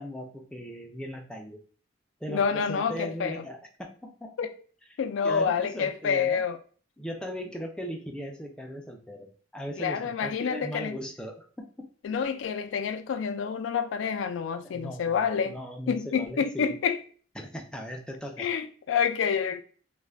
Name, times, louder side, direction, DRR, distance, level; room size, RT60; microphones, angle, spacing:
voice 1, 0.0-1.6 2.2-4.5 5.2-6.4 7.0-11.9 14.6-16.8 17.4-18.5, equal, 5° left, 0.4 m, -38 dB
voice 2, 2.3-3.4 4.4-4.5 5.0-6.6 9.8-11.0 12.0-15.6 15.9-17.0 18.4-19.6, left 6 dB, 80° left, 0.3 m, -28 dB
2.3 x 2.1 x 3.3 m
head